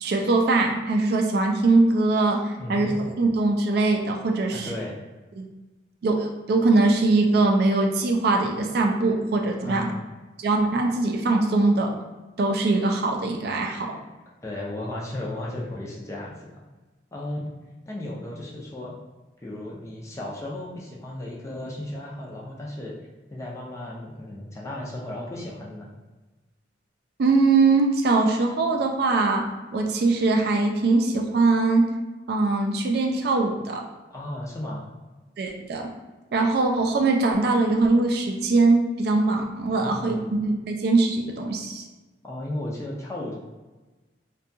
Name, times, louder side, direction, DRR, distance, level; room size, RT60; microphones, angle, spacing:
voice 1, 0.0-2.9 3.2-4.7 5.4-5.5 6.0-9.9 10.4-11.9 12.4-14.0 27.2-29.4 29.7-31.8 32.3-33.8 35.4-35.8 36.3-41.8, right 3 dB, 55° right, 2 dB, 0.3 m, -22 dB
voice 2, 2.6-3.0 4.5-4.9 9.6-9.9 14.4-16.5 17.1-17.5 17.9-18.9 19.4-23.0 23.3-25.9 34.1-34.8 39.7-40.2 42.2-43.4, left 1 dB, 15° left, -3 dB, 0.4 m, -34 dB
2.7 x 2.2 x 2.6 m, 1.2 s
head